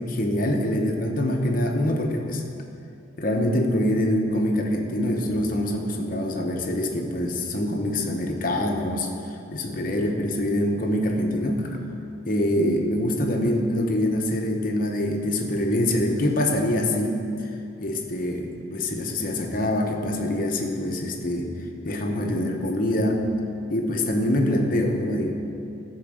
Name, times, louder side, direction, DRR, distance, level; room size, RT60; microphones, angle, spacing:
voice 1, 0.0-2.4 3.2-9.1 9.5-11.7 12.2-17.2 17.8-21.5 21.9-23.2 23.7-25.4, left 1 dB, 45° left, 2 dB, 1.1 m, -24 dB
14.0 x 4.8 x 6.4 m, 2.7 s
head